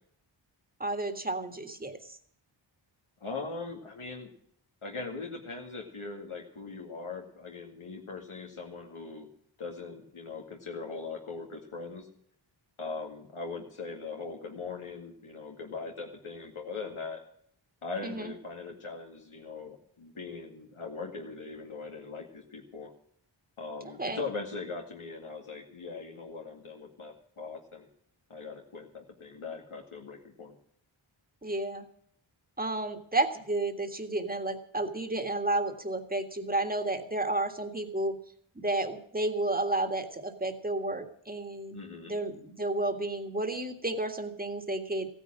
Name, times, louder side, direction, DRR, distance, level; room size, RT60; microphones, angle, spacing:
voice 1, 0.8-2.0 18.0-18.3 24.0-24.2 31.4-31.8 32.6-38.1 38.5-41.8 42.1-45.1, right 2 dB, 20° right, 5 dB, 1.8 m, -31 dB
voice 2, 3.2-4.3 4.8-9.3 9.6-12.1 12.8-17.2 17.8-22.9 23.6-27.9 28.3-30.6 41.7-42.1, left 4 dB, 85° left, 0 dB, 2.2 m, -40 dB
15.5 x 9.9 x 7.5 m, 0.65 s
wide cardioid pair, 80°, 49 cm